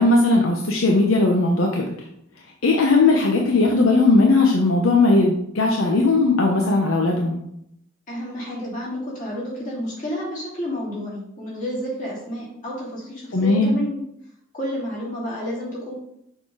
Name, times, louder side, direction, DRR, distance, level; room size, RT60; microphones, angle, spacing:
voice 1, 0.0-2.0 2.6-7.4 13.3-13.8, left 3 dB, 75° left, 0 dB, 0.8 m, -18 dB
voice 2, 8.1-14.0 14.5-15.9, left 1 dB, 40° left, -6 dB, 2.8 m, -30 dB
6.5 x 3.9 x 4.8 m, 0.76 s
head